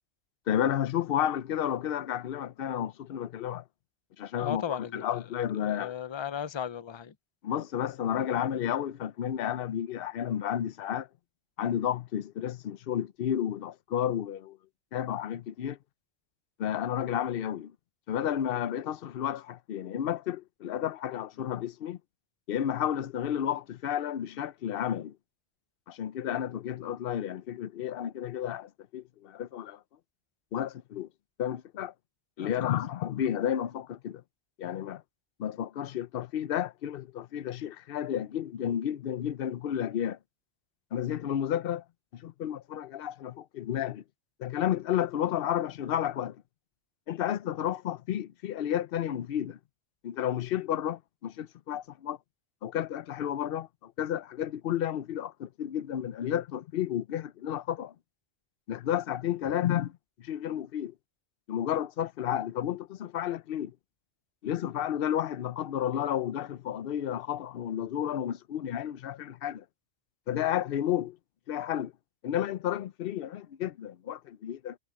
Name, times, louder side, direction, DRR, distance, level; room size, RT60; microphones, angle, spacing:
voice 1, 0.5-3.6 4.2-5.9 7.4-11.1 11.6-14.6 14.9-15.8 16.6-17.7 18.1-22.0 22.5-25.2 25.9-29.8 30.5-31.1 31.4-31.9 32.4-34.2 34.6-35.0 35.4-40.2 40.9-41.8 42.1-44.0 44.4-46.4 47.1-49.6 50.0-52.2 52.6-57.9 58.7-60.9 61.5-63.7 64.4-69.6 70.3-71.2 71.5-71.9 72.2-74.8, left 10 dB, 60° left, 0.8 m, -32 dB
voice 2, 4.4-5.0 5.6-7.1 32.4-32.7, left 8 dB, 35° left, 0.5 m, -36 dB
omnidirectional pair, 1.2 m